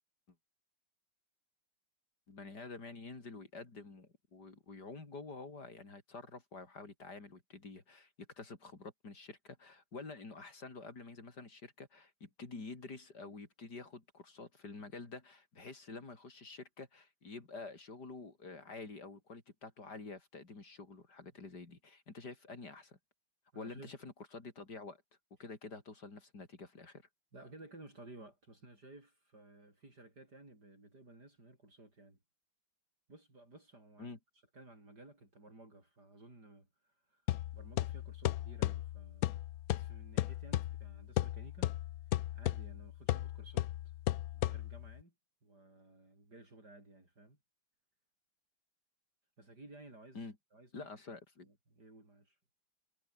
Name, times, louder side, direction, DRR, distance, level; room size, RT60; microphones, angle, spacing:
voice 1, 2.3-23.0 23.6-25.0 25.4-27.0 34.0-34.2 50.1-50.3 50.7-51.5, left 3 dB, 55° left, 4.6 m, -48 dB
voice 2, 23.5-23.9 27.3-32.2 33.1-34.1 34.5-39.4 39.7-41.7 42.3-43.9 44.3-45.1 45.4-47.4 49.4-50.9 51.4-52.4, right 2 dB, 55° right, 7.8 m, -56 dB
sound 1, 37.3-45.0, left 14 dB, 80° left, 0.8 m, -36 dB
omnidirectional pair, 2.1 m